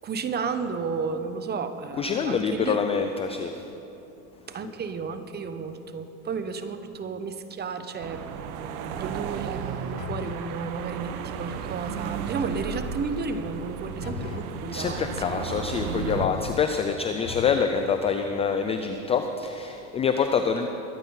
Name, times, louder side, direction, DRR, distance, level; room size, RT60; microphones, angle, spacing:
voice 1, 0.0-2.8 4.5-15.3, right 5 dB, 20° right, 10 dB, 0.9 m, -33 dB
voice 2, 2.0-3.5 14.7-20.7, left 6 dB, 15° left, 7 dB, 0.3 m, -26 dB
sound 1, 8.0-16.3, right 7 dB, 65° right, 1.2 m, -34 dB
sound 2, 10.0-10.5 14.0-14.6 16.1-16.8 17.2-17.8, left 12 dB, 55° left, 0.9 m, -38 dB
22.5 x 9.8 x 5.5 m, 2.9 s
supercardioid pair, 125°, 46 cm